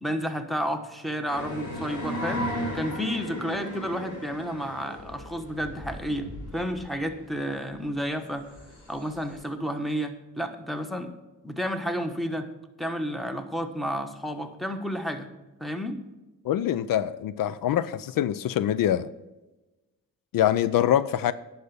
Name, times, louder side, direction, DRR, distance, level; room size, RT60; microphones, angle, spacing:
voice 1, 0.0-2.5 2.7-8.4 8.9-11.1 11.4-12.5 12.8-15.3 15.6-16.0, equal, ahead, 7 dB, 1.2 m, -31 dB
sound 1, 1.3-9.4, equal, 60° left, 4.1 m, -36 dB
voice 2, 16.4-19.1 20.3-21.3, left 11 dB, 75° left, 16 dB, 0.5 m, -24 dB
10.5 x 5.7 x 6.9 m, 1.1 s
cardioid pair, 70°, 34 cm